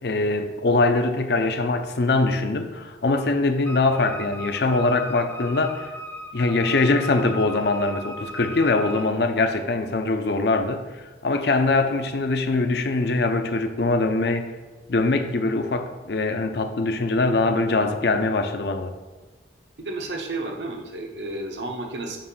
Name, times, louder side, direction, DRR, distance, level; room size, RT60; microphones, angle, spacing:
voice 1, 0.0-5.9 6.3-14.5 14.9-18.9, left 3 dB, 60° left, 7 dB, 0.5 m, -22 dB
Wind instrument woodwind instrument, 3.6-9.1, left 1 dB, 10° left, 0.4 m, -37 dB
voice 2, 19.8-22.2, right 2 dB, 70° right, 2 dB, 0.9 m, -32 dB
7.2 x 2.6 x 5.4 m, 1.3 s
head